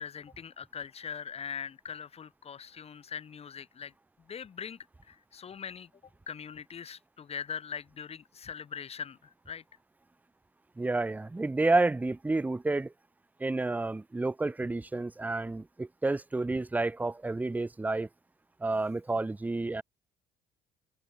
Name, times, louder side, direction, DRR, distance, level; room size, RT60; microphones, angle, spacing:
voice 1, 0.0-3.9 4.3-4.8 5.1-5.9 6.3-9.6, left 7 dB, 35° left, 1.5 m, -41 dB
voice 2, 10.8-12.9 13.4-18.1 18.6-19.8, right 2 dB, 10° right, 0.5 m, -30 dB
cardioid pair, 110°, 17 cm